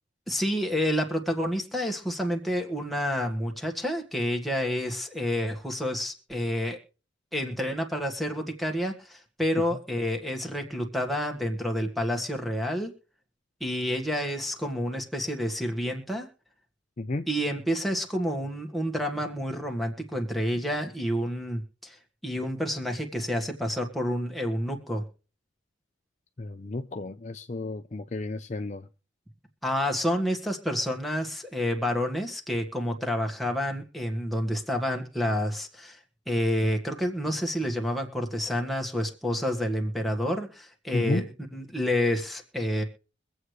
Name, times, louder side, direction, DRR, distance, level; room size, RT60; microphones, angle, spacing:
voice 1, 0.3-6.8 7.3-12.9 13.6-16.3 17.3-21.9 22.2-25.0 29.6-36.0 36.3-41.2 41.5-42.8, equal, ahead, 1.6 m, -29 dB
voice 2, 17.0-17.3 26.4-28.9 40.9-41.3, left 2 dB, 40° left, 0.5 m, -32 dB
23.5 x 8.0 x 3.2 m
head